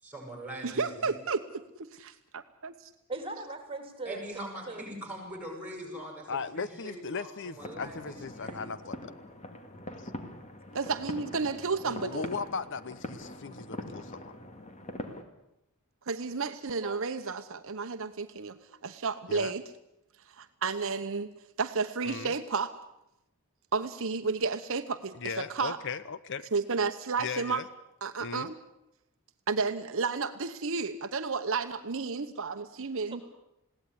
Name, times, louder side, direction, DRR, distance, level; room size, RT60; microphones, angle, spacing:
voice 1, 0.0-1.2 4.0-8.6, right 1 dB, 5° right, 1 dB, 7.6 m, -42 dB
voice 2, 0.6-2.9 10.7-12.3 16.1-19.6 20.3-21.3 21.6-22.7 23.7-25.8 26.5-27.6 28.0-28.6 29.5-33.2, right 4 dB, 65° right, 8 dB, 1.0 m, -32 dB
voice 3, 3.1-4.9 11.8-12.2 16.8-17.0 33.1-33.2, right 2 dB, 25° right, 6 dB, 3.2 m, -40 dB
voice 4, 6.3-9.1 10.0-10.1 12.0-14.4 19.3-19.5 22.0-22.3 25.2-26.5 27.2-27.7 28.2-28.5, left 5 dB, 55° left, 15 dB, 0.8 m, -37 dB
sound 1, 7.6-15.2, left 1 dB, 30° left, 2.2 m, -43 dB
21.5 x 17.0 x 9.8 m, 0.88 s
head